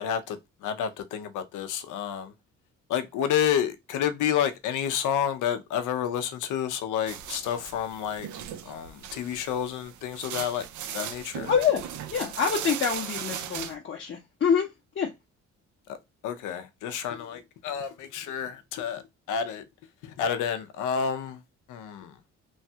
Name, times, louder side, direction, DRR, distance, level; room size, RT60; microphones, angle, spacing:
voice 1, 0.0-2.3 2.9-8.3 8.7-10.7 10.9-11.5 15.9-16.0 16.2-19.0 19.3-19.6 20.0-21.4 21.7-22.2, left 8 dB, 85° left, 0.6 m, -30 dB
sound 1, 7.1-13.7, right 10 dB, 75° right, 0.5 m, -38 dB
voice 2, 11.5-14.7 15.0-15.1, left 7 dB, 40° left, 0.7 m, -26 dB
3.1 x 2.2 x 2.7 m
cardioid pair, 90°, 30 cm